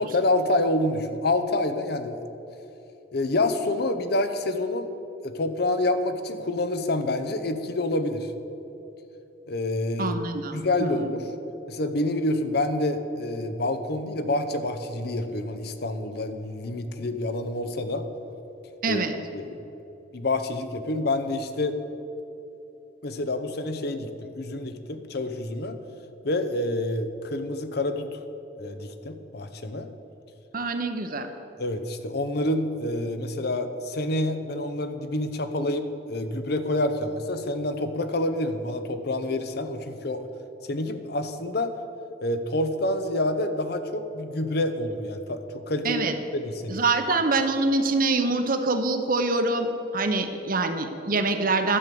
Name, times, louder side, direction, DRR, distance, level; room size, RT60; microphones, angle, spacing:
voice 1, 0.0-2.2 3.1-4.9 5.2-8.3 9.5-10.2 10.5-11.3 11.7-18.1 18.9-19.0 19.3-19.6 20.1-21.8 23.0-25.8 26.2-28.2 28.6-29.9 31.6-40.3 40.6-41.7 42.2-46.0 46.3-46.8, left 2 dB, 60° left, 9 dB, 0.8 m, -27 dB
voice 2, 10.0-11.2 18.8-19.1 30.5-31.3 45.8-46.2 46.7-51.8, right 3 dB, 50° right, 7 dB, 0.9 m, -25 dB
11.0 x 7.7 x 6.8 m, 3.0 s
head